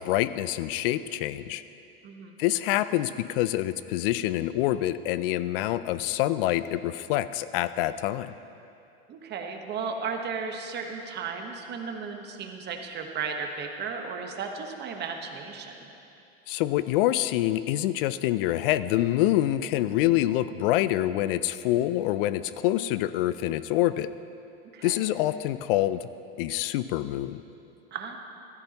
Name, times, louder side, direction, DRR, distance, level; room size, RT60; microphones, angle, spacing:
voice 1, 0.0-1.6 2.4-8.3 16.5-24.1 24.8-26.1 26.4-27.4, left 14 dB, 65° left, 15 dB, 0.4 m, -26 dB
voice 2, 2.0-2.4 9.1-15.9 24.7-25.0 27.9-28.2, right 5 dB, 35° right, 3 dB, 1.2 m, -35 dB
14.5 x 13.5 x 3.0 m, 2.7 s
supercardioid pair, 115°, 30 cm